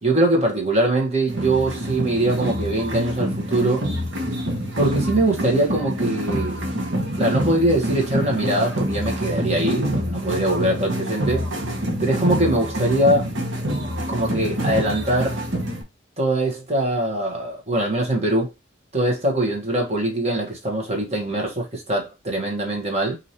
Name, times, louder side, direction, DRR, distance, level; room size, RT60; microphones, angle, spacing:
voice 1, 0.0-3.8 4.8-6.6 7.2-11.4 12.0-13.3 14.1-15.4 16.2-18.5 18.9-23.2, right 1 dB, 35° right, 1.3 m, -22 dB
sound 1, 1.3-15.8, equal, 90° right, 1.1 m, -26 dB
5.0 x 2.7 x 2.9 m
head